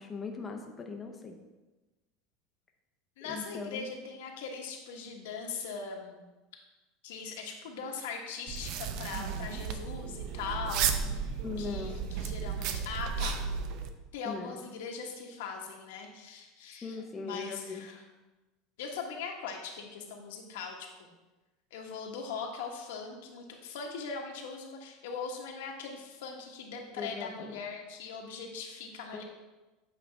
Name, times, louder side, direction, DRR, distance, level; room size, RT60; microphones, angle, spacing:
voice 1, 0.0-1.4 3.2-3.9 11.4-12.1 14.2-14.7 16.7-17.9 27.0-27.6 29.1-29.2, left 4 dB, 15° left, 2 dB, 0.7 m, -40 dB
voice 2, 3.2-6.2 7.0-13.3 14.1-18.0 18.8-21.1 21.7-29.2, left 5 dB, 90° left, 2 dB, 1.2 m, -40 dB
sound 1, 8.5-13.9, right 6 dB, 55° right, 0.5 m, -34 dB
8.5 x 5.0 x 3.4 m, 1.1 s
supercardioid pair, 150°, 0 cm